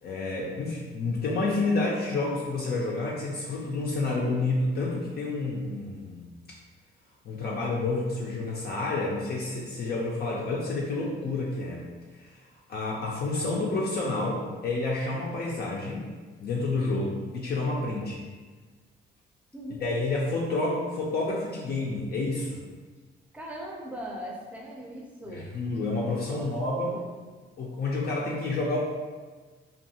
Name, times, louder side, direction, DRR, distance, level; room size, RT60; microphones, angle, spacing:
voice 1, 0.0-6.3 7.2-11.8 12.1-12.4 12.7-16.1 16.4-18.2 19.8-22.6 25.3-26.9 27.6-28.8, left 2 dB, 55° left, -4 dB, 0.5 m, -29 dB
voice 2, 19.5-19.9 23.3-25.5 26.2-27.2, equal, 5° right, -3 dB, 0.6 m, -40 dB
2.6 x 2.4 x 2.7 m, 1.4 s
cardioid pair, 90°, 20 cm